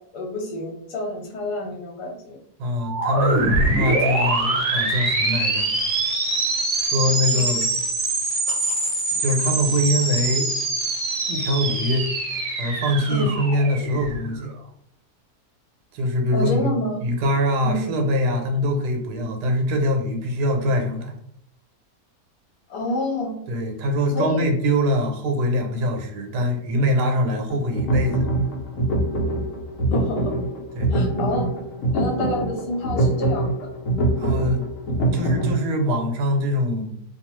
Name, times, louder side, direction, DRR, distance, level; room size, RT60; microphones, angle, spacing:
voice 1, 0.1-2.4 7.3-7.4 13.1-13.3 16.3-17.0 17.6-17.9 22.7-23.3 24.1-24.5 29.9-30.3 30.9-31.5 31.9-33.7, left 1 dB, 85° left, 1 dB, 1.3 m, -28 dB
voice 2, 2.6-5.7 6.7-7.7 9.2-10.5 11.3-12.1 12.6-14.5 15.9-16.7 17.0-21.1 23.5-28.3 30.7-30.9 34.2-34.7 35.1-36.9, left 1 dB, 85° right, 3 dB, 1.2 m, -23 dB
sound 1, 2.8-14.5, right 2 dB, 50° right, 1.0 m, -24 dB
sound 2, 27.5-35.6, right 2 dB, 65° left, 0.9 m, -24 dB
2.7 x 2.3 x 3.0 m, 0.73 s
omnidirectional pair, 1.7 m